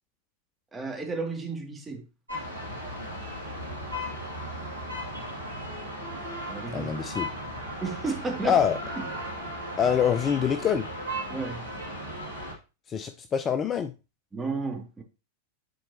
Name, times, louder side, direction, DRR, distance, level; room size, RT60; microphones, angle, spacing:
voice 1, 0.7-2.0 6.5-6.9 7.8-8.6 9.0-9.1 11.3-11.7 14.3-15.0, right 4 dB, 10° right, 2.3 m, -33 dB
sound 1, 2.3-12.5, equal, 85° right, 2.5 m, -36 dB
voice 2, 6.7-7.3 8.4-8.8 9.8-10.9 12.9-13.9, left 8 dB, 25° left, 0.5 m, -25 dB
10.5 x 4.4 x 2.8 m
figure-of-eight pair, 90°, 0 cm